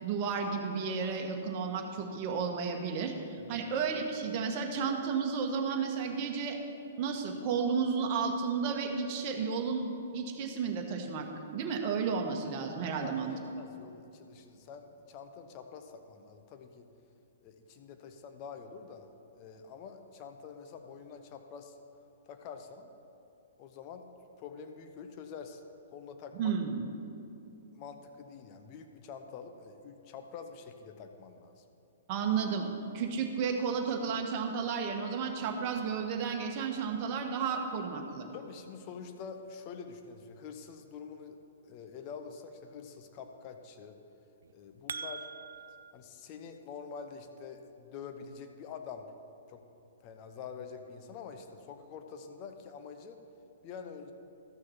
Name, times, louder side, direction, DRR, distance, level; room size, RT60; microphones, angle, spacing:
voice 1, 0.0-6.6 7.0-11.3 11.5-13.3 26.4-26.9 32.1-32.7 32.9-38.3, right 5 dB, 40° right, 2 dB, 1.3 m, -32 dB
voice 2, 13.0-16.9 17.4-19.1 19.4-21.8 22.3-22.9 23.6-24.0 24.4-25.6 25.9-26.5 27.7-31.6 38.3-41.4 41.6-44.0 44.5-45.3 45.9-49.1 49.5-49.6 50.0-53.2 53.6-54.1, left 6 dB, 40° left, 6 dB, 0.9 m, -46 dB
sound 1, 44.4-45.9, right 6 dB, 70° right, 0.3 m, -42 dB
13.5 x 6.4 x 5.8 m, 2.8 s
figure-of-eight pair, 115°, 0 cm